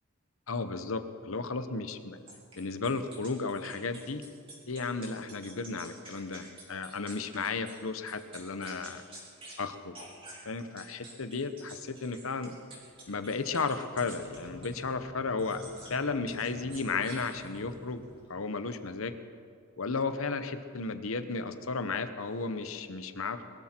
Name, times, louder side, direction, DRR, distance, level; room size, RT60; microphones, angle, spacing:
voice 1, 0.5-2.2 2.6-4.2 4.7-9.0 9.6-9.9 10.4-12.5 13.1-15.6 15.9-18.0 18.3-19.1 19.8-23.5, left 4 dB, 70° left, 10 dB, 1.0 m, -34 dB
sound 1, 2.3-7.8 8.1-9.6 9.9-14.8 15.4-16.0 16.3-17.7, right 1 dB, 25° right, 3.9 m, -49 dB
sound 2, 12.9-13.1 13.9-18.9, equal, 25° left, 3.9 m, -50 dB
22.0 x 13.5 x 4.5 m, 2.4 s
head